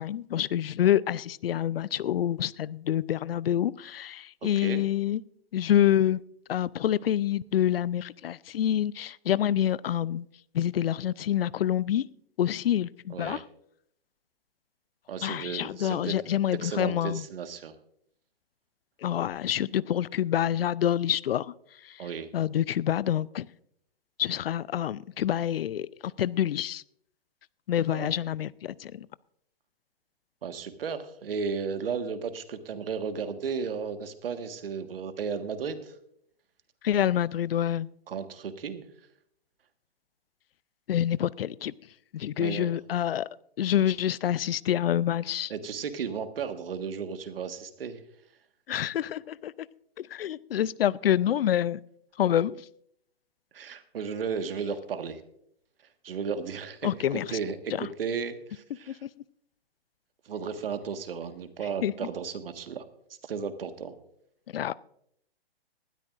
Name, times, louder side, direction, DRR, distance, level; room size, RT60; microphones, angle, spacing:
voice 1, 0.0-5.2 5.5-6.2 6.5-10.3 10.5-12.1 12.4-13.4 15.2-17.2 19.0-21.5 21.8-22.0 22.3-23.5 24.2-26.8 27.7-29.1 36.8-37.9 40.9-41.7 42.1-43.3 43.6-45.5 48.7-49.5 50.0-51.8 52.2-52.6 56.8-57.4 57.8-57.9 58.9-59.1 61.8-61.9 64.5-64.7, left 11 dB, 70° left, 0.5 m, -27 dB
voice 2, 4.4-4.8 13.1-13.4 15.1-16.1 16.6-17.7 22.0-22.3 27.9-28.1 30.4-35.9 38.1-38.8 42.4-42.7 45.5-48.0 53.5-55.2 56.0-59.0 60.2-62.8 63.2-64.0, right 6 dB, 70° right, 1.6 m, -34 dB
19.5 x 12.5 x 2.5 m
hypercardioid pair, 135°, 30 cm